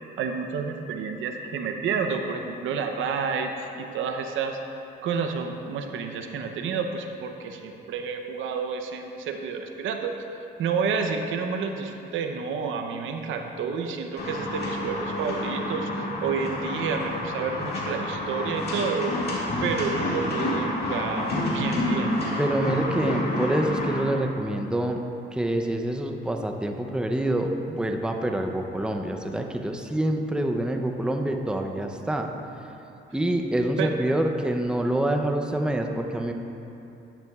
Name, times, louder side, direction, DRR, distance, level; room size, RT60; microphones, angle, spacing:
voice 1, 0.2-4.6 5.0-10.1 10.6-19.1 19.6-22.2 33.8-33.9, right 5 dB, 80° right, 5 dB, 0.7 m, -30 dB
sound 1, 14.2-24.0, left 1 dB, 55° left, 1.9 m, -29 dB
voice 2, 22.4-25.0 25.3-32.3 33.1-36.3, right 1 dB, 5° right, 4 dB, 0.6 m, -26 dB
10.5 x 10.0 x 2.4 m, 2.8 s
cardioid pair, 90°, 20 cm